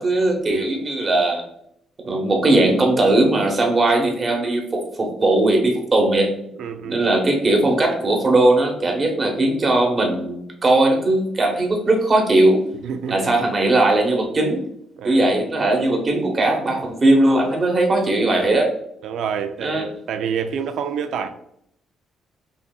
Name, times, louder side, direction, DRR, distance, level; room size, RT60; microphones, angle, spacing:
voice 1, 0.0-1.4 2.0-6.3 6.8-12.6 13.1-14.6 15.0-18.7 19.6-19.8, right 2 dB, 35° right, 1 dB, 1.0 m, -19 dB
voice 2, 6.6-7.0 12.8-13.3 15.0-15.5 19.0-21.3, right 7 dB, 75° right, 8 dB, 0.3 m, -28 dB
5.0 x 2.7 x 2.2 m, 0.74 s
cardioid pair, 90°, 0 cm